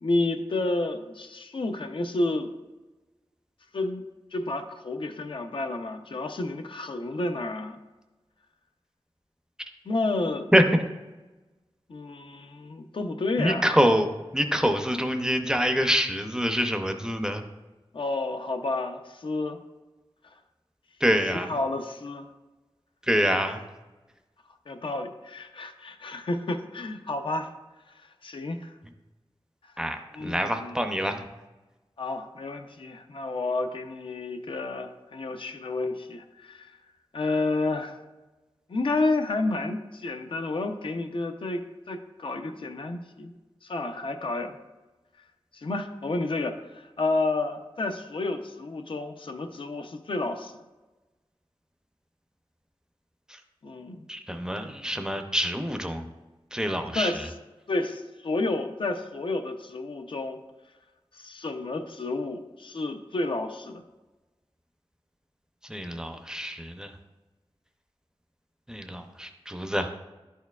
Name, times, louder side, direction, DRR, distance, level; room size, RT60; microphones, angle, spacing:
voice 1, 0.0-2.5 3.7-4.0 4.3-7.8 9.8-10.5 11.9-13.7 17.9-19.6 21.3-22.3 24.7-27.5 28.2-28.7 30.1-30.8 32.0-36.7 37.1-38.0 38.7-43.3 43.6-44.6 45.5-50.5 53.6-54.1 56.7-57.3 57.7-60.4 61.1-63.8, left 2 dB, 65° left, 6 dB, 0.6 m, -30 dB
voice 2, 13.4-14.1 14.3-17.4 21.0-21.5 23.1-23.6 29.8-31.2 54.1-56.0 56.5-57.1 65.7-66.9 68.7-69.9, equal, 5° right, 6 dB, 0.5 m, -25 dB
11.0 x 4.4 x 2.3 m, 1.1 s
wide cardioid pair, 100°, 10 cm